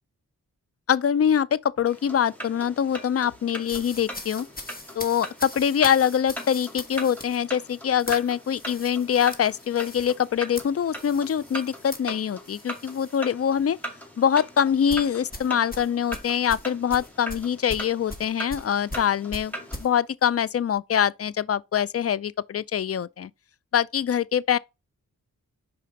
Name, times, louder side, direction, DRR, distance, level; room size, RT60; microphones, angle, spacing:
voice 1, 0.9-4.5 5.0-13.8 14.2-19.5 19.8-23.3 23.7-24.6, left 8 dB, 40° left, 0.4 m, -24 dB
sound 1, 1.9-19.9, right 1 dB, 5° left, 2.2 m, -40 dB
sound 2, 3.6-13.2 13.6-13.8 14.9-19.9, left 1 dB, 25° left, 1.3 m, -41 dB
5.0 x 3.9 x 5.7 m
cardioid pair, 40°, 36 cm